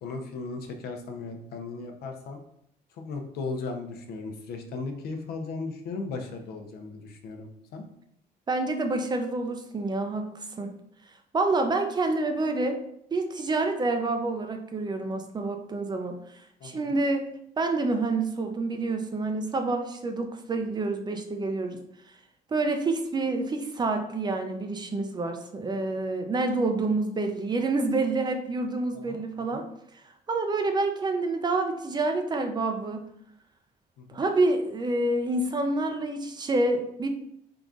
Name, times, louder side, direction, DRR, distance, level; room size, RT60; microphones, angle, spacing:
voice 1, 0.0-2.4 2.9-7.8 16.6-16.9 28.9-29.6 34.0-34.2, left 3 dB, 70° left, 4 dB, 0.7 m, -37 dB
voice 2, 8.5-10.7 11.3-12.8 13.1-16.2 16.6-17.2 17.6-21.8 22.5-29.6 30.3-33.0 34.1-37.1, right 2 dB, 25° right, 5 dB, 0.4 m, -27 dB
3.8 x 2.4 x 3.6 m, 0.73 s
cardioid pair, 110°, 17 cm